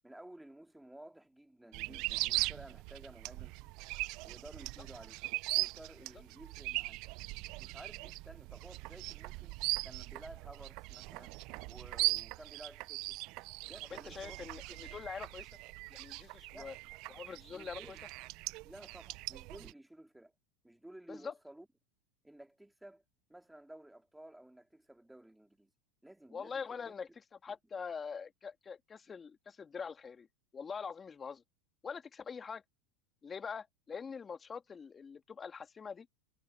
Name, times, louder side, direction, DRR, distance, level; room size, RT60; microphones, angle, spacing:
voice 1, 0.0-3.8 4.2-5.2 5.5-7.0 7.6-9.5 9.8-11.3 11.7-13.2 13.6-14.4 14.7-14.8 16.5-16.8 17.5-18.0 18.6-20.3 20.6-21.7 22.2-23.0 23.3-25.7 26.0-26.9 27.5-27.6, right 1 dB, 5° right, 3.1 m, -54 dB
sound 1, 1.7-19.7, right 22 dB, 55° right, 0.6 m, -40 dB
voice 2, 13.9-15.5 15.9-16.7 17.1-18.0 21.1-21.3 26.3-27.1 27.4-30.3 30.5-31.4 31.8-32.6 33.2-36.1, left 6 dB, 25° left, 2.3 m, -44 dB
hypercardioid pair, 105°, 0 cm